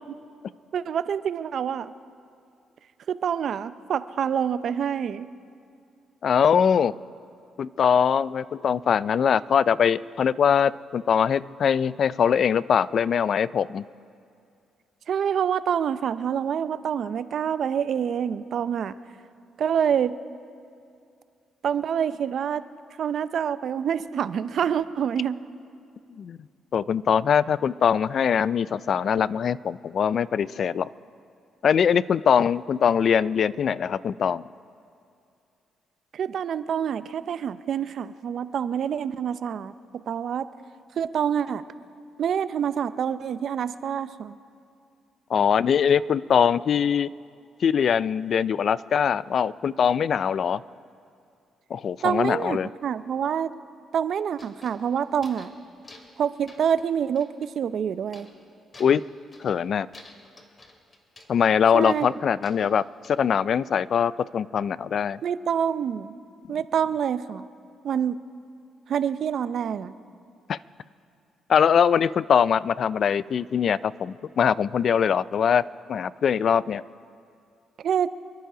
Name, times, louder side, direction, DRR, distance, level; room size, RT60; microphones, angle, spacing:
voice 1, 0.7-1.9 3.1-5.3 15.1-19.0 19.6-20.2 21.6-22.6 23.0-25.4 36.1-39.7 40.1-40.5 41.0-41.6 42.2-44.4 52.0-53.5 53.9-55.5 56.2-58.3 61.7-62.1 65.2-66.1 66.5-67.4 67.8-68.2 68.9-69.9 77.8-78.1, right 8 dB, 60° right, 13 dB, 0.6 m, -26 dB
voice 2, 6.2-6.9 7.6-13.9 26.2-26.4 26.7-30.9 31.6-34.4 45.3-47.1 47.6-50.6 51.7-52.7 58.8-59.0 59.4-59.9 61.3-62.8 63.1-65.2 70.5-70.6 71.5-75.6 75.9-76.8, left 7 dB, 55° left, 18 dB, 0.3 m, -22 dB
sound 1, 54.3-55.6 55.8-56.2 56.5-57.5 58.1-58.4 58.7-59.6 59.9-61.3 61.8-63.2, left 2 dB, 35° left, 2.3 m, -51 dB
27.5 x 10.5 x 5.0 m, 2.5 s
cardioid pair, 90°, 0 cm